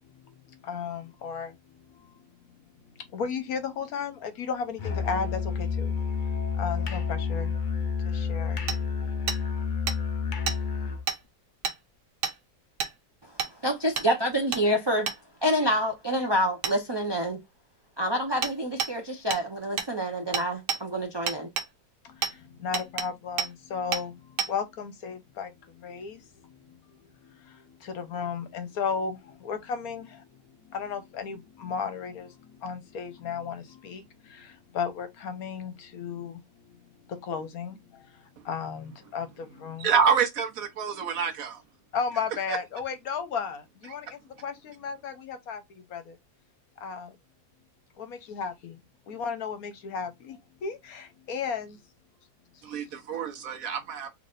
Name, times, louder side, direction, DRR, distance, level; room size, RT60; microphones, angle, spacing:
voice 1, 0.0-2.3 2.8-6.0 6.3-8.7 9.0-9.1 22.0-39.9 41.9-46.2 46.8-47.1 48.0-48.8 49.1-51.8 52.9-53.0, left 6 dB, 65° left, 1.1 m, -35 dB
Musical instrument, 4.8-11.1, left 5 dB, 85° left, 0.4 m, -29 dB
Hammer, 8.7-8.8 9.3-9.4 9.9-10.0 10.5-10.6 11.1-11.2 11.6-11.8 12.2-12.4 12.8-12.9 13.4-13.5 14.0-14.1 14.5-14.6 15.1-15.2 16.6-16.8 18.4-18.5 18.8-18.9 19.3-19.4 19.8-19.9 20.3-20.8 21.3-21.7 22.2-22.3 22.7-23.1 23.4-23.5 23.9-24.0 24.4-24.5, right 6 dB, 85° right, 1.4 m, -29 dB
voice 2, 13.6-15.1 15.4-17.4 18.0-21.5, equal, 30° right, 0.4 m, -27 dB
voice 3, 39.8-41.6 42.5-42.6 52.6-54.1, right 7 dB, 60° right, 1.2 m, -27 dB
3.9 x 3.2 x 2.4 m
omnidirectional pair, 1.8 m